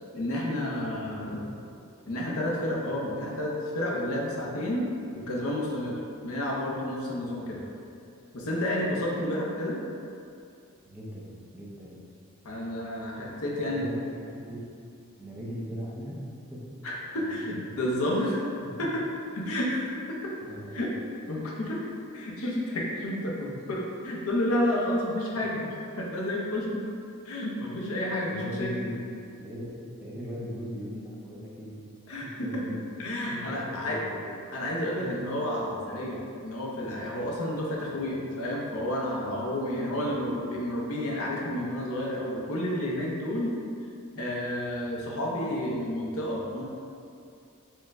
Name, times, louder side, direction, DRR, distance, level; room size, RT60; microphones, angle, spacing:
voice 1, 0.0-1.5 2.1-4.9 5.1-7.6 8.3-9.8 12.4-14.0 16.8-18.4 18.8-19.0 19.3-20.3 20.7-20.9 21.3-21.8 22.1-26.8 27.2-28.7 32.1-32.7 33.0-34.0 34.5-43.5 44.2-46.6, left 1 dB, 70° left, -3 dB, 0.6 m, -30 dB
voice 2, 1.0-1.4 4.5-4.6 7.4-7.5 10.8-12.0 13.5-14.6 15.2-16.2 16.5-16.6 17.1-17.9 20.4-20.8 28.2-29.0 29.4-31.7 32.4-32.9 33.3-34.2 35.0-35.1 39.9-40.1 44.1-44.3, equal, 5° right, -7 dB, 0.5 m, -39 dB
4.5 x 2.1 x 3.5 m, 2.5 s
head